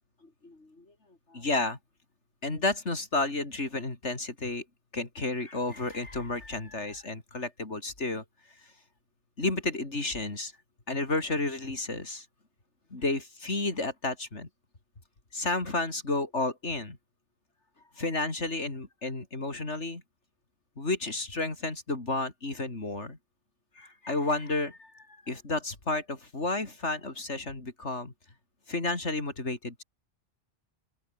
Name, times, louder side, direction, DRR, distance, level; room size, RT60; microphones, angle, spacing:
voice 1, 0.4-0.9 1.3-1.8 2.4-4.6 4.9-8.2 9.4-10.5 10.9-12.3 12.9-14.5 15.3-17.0 18.0-20.0 20.8-23.2 23.8-28.1 28.7-29.8, left 2 dB, 70° left, 4.2 m, -31 dB
open air
omnidirectional pair, 1.2 m